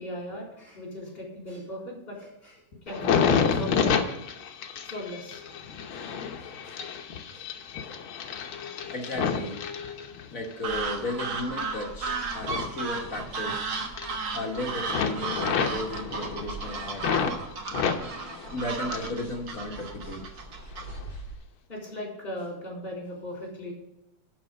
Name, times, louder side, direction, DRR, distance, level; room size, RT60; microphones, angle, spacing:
voice 1, 0.0-4.0 4.8-5.4 5.9-6.8 7.3-7.5 7.8-7.9 8.8-8.9 10.7-10.8 14.8-14.9 21.7-23.7, left 1 dB, 20° left, -2 dB, 3.8 m, -39 dB
sound 1, 2.9-10.5 11.0-13.6 13.8-14.6 14.9-17.4 17.7-19.2 19.5-20.3 20.8-21.0, left 6 dB, 65° left, 1.3 m, -30 dB
voice 2, 8.9-9.6 10.3-13.7 14.3-17.0 17.6-17.9 18.5-20.3, left 2 dB, 45° left, 0 dB, 1.1 m, -35 dB
sound 2, 10.6-21.4, right 4 dB, 50° right, 1.5 m, -34 dB
12.0 x 5.7 x 5.2 m, 0.89 s
omnidirectional pair, 3.4 m